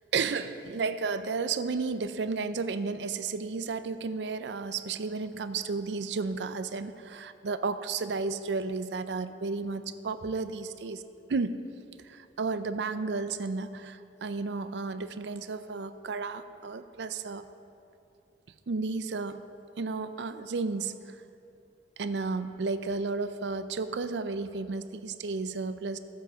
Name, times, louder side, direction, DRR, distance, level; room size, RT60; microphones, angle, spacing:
voice 1, 0.1-11.0 11.3-11.6 12.0-17.4 18.7-19.4 19.8-21.2 22.0-26.0, right 4 dB, 75° right, 11 dB, 0.5 m, -33 dB
13.0 x 8.1 x 4.9 m, 2.6 s
head